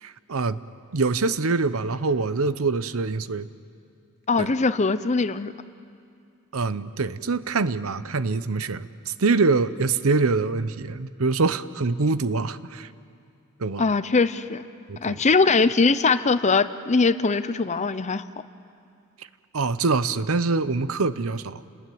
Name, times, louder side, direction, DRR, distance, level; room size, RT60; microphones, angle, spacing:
voice 1, 0.0-0.6 0.9-3.5 4.4-4.5 6.5-12.9 13.6-13.8 14.9-15.2 19.5-21.6, right 4 dB, 70° right, 14 dB, 0.8 m, -24 dB
voice 2, 4.3-5.5 13.8-14.6 15.0-18.2, left 4 dB, 30° left, 13 dB, 0.7 m, -21 dB
30.0 x 20.0 x 9.3 m, 2.4 s
head